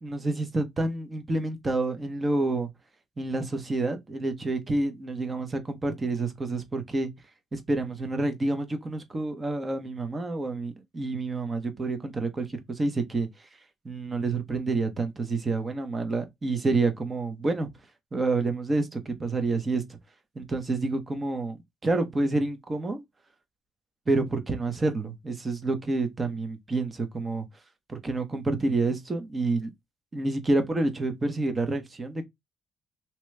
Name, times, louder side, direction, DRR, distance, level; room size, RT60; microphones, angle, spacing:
voice 1, 0.0-2.7 3.2-7.1 7.5-13.3 13.8-17.7 18.1-20.0 20.3-23.0 24.1-27.5 27.9-29.7 30.1-32.2, right 2 dB, 30° right, 1.0 m, -28 dB
3.0 x 2.9 x 3.3 m
cardioid pair, 90°, 0 cm